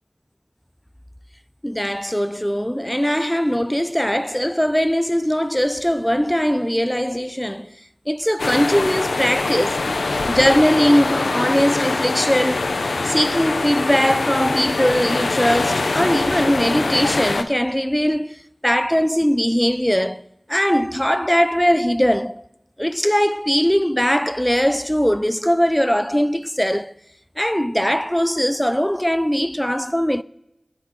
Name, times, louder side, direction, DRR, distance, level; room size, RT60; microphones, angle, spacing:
voice 1, 1.6-7.7 8.1-9.9 10.3-12.7 13.0-20.2 20.5-22.4 22.8-26.9 27.4-30.2, equal, 5° left, 0.3 m, -20 dB
sound 1, 8.4-17.4, left 3 dB, 90° left, 0.5 m, -23 dB
16.5 x 5.8 x 3.1 m
wide cardioid pair, 60°, 0 cm